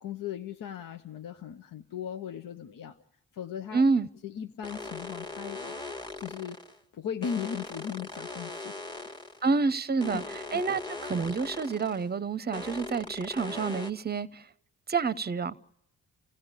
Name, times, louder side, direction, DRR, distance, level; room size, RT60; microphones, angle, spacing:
voice 1, 0.0-3.0 3.3-3.8 4.2-5.8 6.2-6.6 6.9-8.7 10.0-10.2 10.5-10.6, left 8 dB, 60° left, 0.9 m, -37 dB
voice 2, 3.7-4.1 9.4-10.2 10.5-14.5 14.9-15.6, right 4 dB, 25° right, 0.8 m, -28 dB
sound 1, 4.6-6.8 7.2-9.4 10.0-12.1 12.5-13.9, left 2 dB, 10° left, 1.5 m, -40 dB
29.5 x 15.5 x 8.2 m
supercardioid pair, 45°, 37 cm